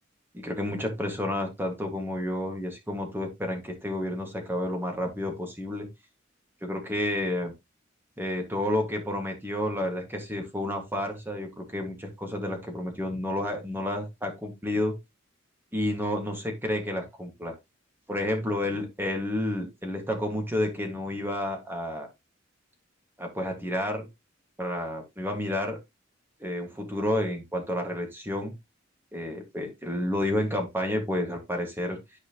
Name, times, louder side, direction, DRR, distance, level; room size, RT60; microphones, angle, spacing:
voice 1, 0.3-5.9 6.6-7.5 8.2-15.0 15.7-17.5 18.1-22.1 23.2-24.1 24.6-25.8 26.4-28.5 29.1-32.0, left 1 dB, 10° right, 4 dB, 1.9 m, -30 dB
11.5 x 4.7 x 3.0 m, 0.21 s
head